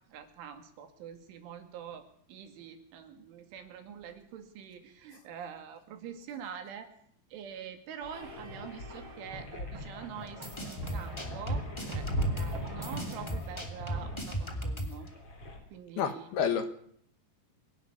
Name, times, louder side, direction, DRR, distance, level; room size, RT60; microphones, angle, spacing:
voice 1, 0.1-6.9 7.3-11.7 11.9-15.1 15.7-16.3, right 8 dB, 75° right, 7 dB, 4.7 m, -45 dB
sound 1, 8.0-15.6, left 1 dB, 30° left, 4.7 m, -40 dB
sound 2, 8.1-13.4, right 1 dB, 45° right, 1.7 m, -45 dB
sound 3, 10.3-15.1, right 1 dB, 10° left, 1.4 m, -36 dB
voice 2, 16.0-16.7, left 7 dB, 65° left, 10 dB, 2.9 m, -29 dB
25.0 x 11.5 x 9.7 m, 0.63 s
omnidirectional pair, 5.6 m